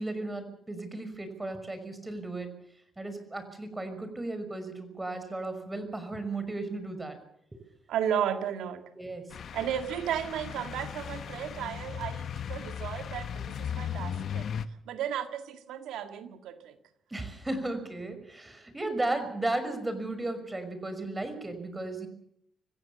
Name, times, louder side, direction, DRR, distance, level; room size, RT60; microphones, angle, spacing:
voice 1, 0.0-2.5 3.0-7.2 9.0-9.2 17.1-22.1, right 2 dB, 20° right, 9 dB, 5.7 m, -35 dB
voice 2, 7.9-8.9 9.5-14.5 14.9-16.8, right 9 dB, 75° right, 7 dB, 1.9 m, -34 dB
sound 1, 9.3-14.7, left 8 dB, 60° left, 1.0 m, -37 dB
25.5 x 16.0 x 7.1 m, 0.73 s
supercardioid pair, 55°, 0 cm